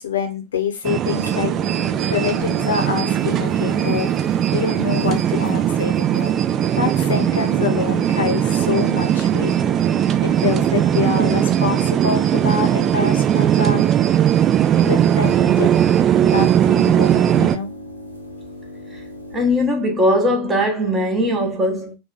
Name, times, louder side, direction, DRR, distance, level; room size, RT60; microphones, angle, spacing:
voice 1, 0.0-1.5 2.1-4.1 4.5-6.3 6.7-9.5 10.2-13.9 14.7-15.7 16.2-17.7, left 6 dB, 65° left, 0.7 m, -25 dB
sound 1, 0.8-17.6, right 10 dB, 30° right, 0.3 m, -19 dB
sound 2, 1.1-19.7, left 1 dB, 90° right, 0.6 m, -36 dB
voice 2, 19.3-21.9, left 1 dB, 15° right, 0.9 m, -19 dB
2.8 x 2.2 x 3.9 m
figure-of-eight pair, 90°, 0 cm